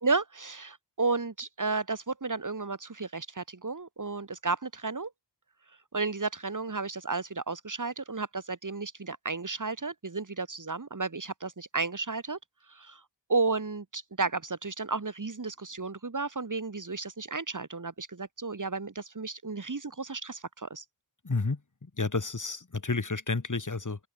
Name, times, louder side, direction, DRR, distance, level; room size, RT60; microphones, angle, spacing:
voice 1, 0.0-5.1 5.9-12.4 12.7-13.0 13.3-20.8, right 3 dB, 45° right, 2.5 m, -33 dB
voice 2, 21.2-21.6 22.0-24.1, left 3 dB, 45° left, 3.9 m, -30 dB
open air
wide cardioid pair, 55°, 42 cm